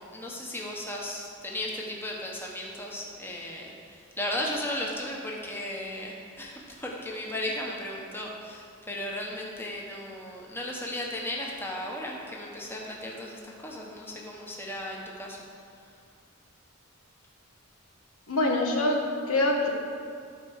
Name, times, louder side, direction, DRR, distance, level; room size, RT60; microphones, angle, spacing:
voice 1, 0.0-15.5, left 1 dB, 10° left, -2 dB, 1.1 m, -35 dB
voice 2, 18.3-19.7, left 2 dB, 85° left, 1 dB, 1.3 m, -25 dB
12.5 x 4.7 x 6.3 m, 2.3 s
head